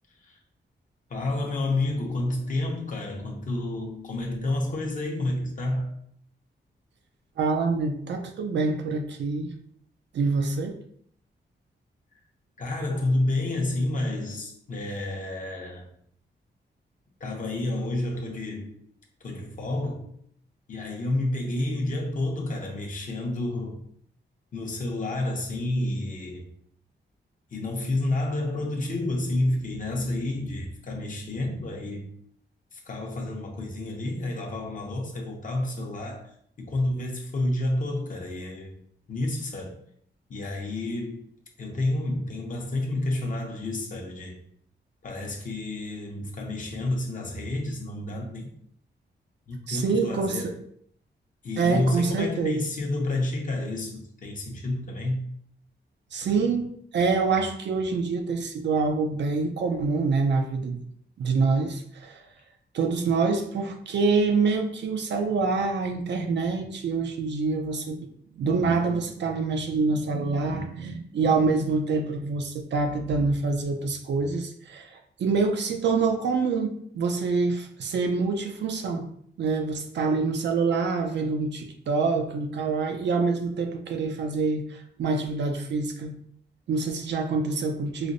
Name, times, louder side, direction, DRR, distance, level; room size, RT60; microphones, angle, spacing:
voice 1, 1.1-5.9 12.6-15.9 17.2-18.8 19.2-20.0 20.7-23.8 24.5-26.5 27.5-32.1 32.7-36.3 36.6-38.8 39.1-39.8 40.3-41.3 41.6-44.4 45.0-48.4 49.5-50.6 51.4-55.2, left 2 dB, 45° left, 0 dB, 0.7 m, -29 dB
voice 2, 7.4-9.5 10.1-10.8 49.7-50.4 51.6-52.7 56.1-60.8 61.2-62.2 62.7-68.0 68.3-79.1 79.4-86.1 86.7-88.1, right 4 dB, 70° right, 5 dB, 0.5 m, -26 dB
4.9 x 2.0 x 2.6 m, 0.64 s
wide cardioid pair, 145°, 19 cm